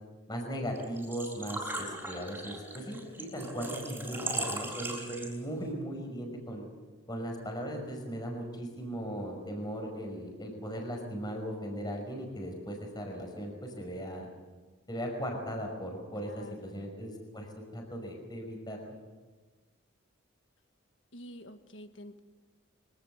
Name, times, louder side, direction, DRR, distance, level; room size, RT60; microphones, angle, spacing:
voice 1, 0.3-6.6 7.1-14.3 14.9-18.9, equal, 20° left, 2 dB, 5.5 m, -38 dB
Engine / Trickle dribble / Fill (with liquid), 0.7-5.6, right 1 dB, 10° right, 5.7 m, -38 dB
voice 2, 16.2-16.9 21.1-22.2, left 1 dB, 60° left, 8 dB, 1.7 m, -48 dB
25.0 x 18.0 x 7.9 m, 1.3 s
head